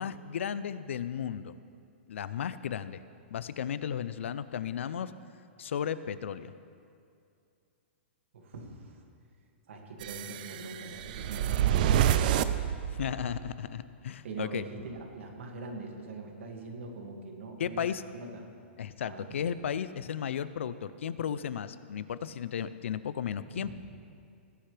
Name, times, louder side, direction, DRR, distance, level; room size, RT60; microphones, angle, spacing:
voice 1, 0.0-1.6 2.1-3.0 3.3-5.1 5.6-6.5 13.0-14.6 17.6-18.0 18.8-23.7, left 8 dB, 80° left, 15 dB, 0.5 m, -34 dB
voice 2, 8.3-9.0 9.7-12.3 14.2-17.9 18.1-18.4 19.0-19.3 23.4-23.7, right 3 dB, 75° right, 2 dB, 2.1 m, -42 dB
sound 1, 10.0-13.5, right 10 dB, 45° right, 0.5 m, -28 dB
19.5 x 10.0 x 3.4 m, 2.4 s
hypercardioid pair, 160°, 7 cm